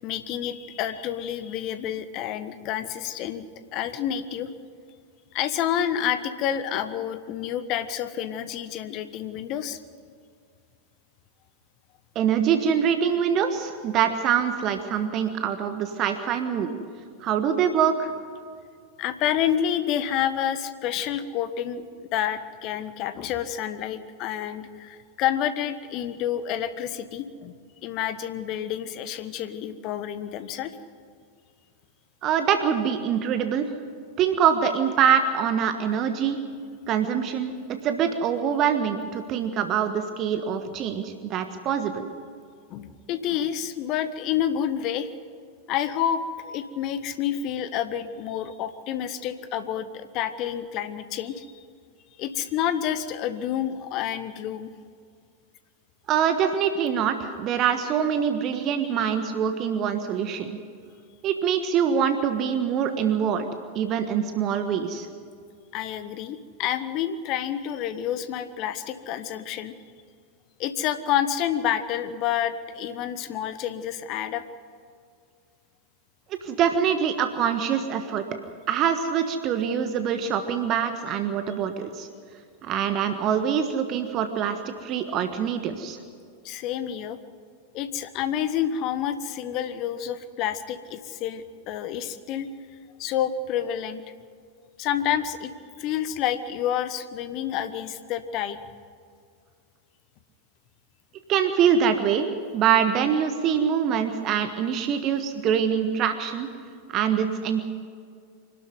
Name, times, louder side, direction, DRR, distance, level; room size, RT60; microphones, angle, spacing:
voice 1, 0.0-3.4 3.7-4.5 5.3-9.8 19.0-27.6 27.8-30.8 42.7-45.1 45.7-51.6 52.2-54.7 65.7-69.7 70.6-74.5 86.4-87.2 87.7-92.5 93.0-94.0 94.8-95.5 95.8-98.6, left 10 dB, 40° left, 12 dB, 1.3 m, -29 dB
voice 2, 12.1-16.7 17.2-18.1 32.2-33.7 34.2-36.4 36.9-37.5 37.8-42.0 56.1-60.6 61.2-63.5 63.7-65.1 76.4-78.2 78.7-82.1 82.6-86.0 101.3-102.3 102.5-106.5 106.9-107.6, right 8 dB, 35° right, 8 dB, 1.4 m, -24 dB
25.0 x 12.5 x 9.6 m, 2.2 s
figure-of-eight pair, 90°, 0 cm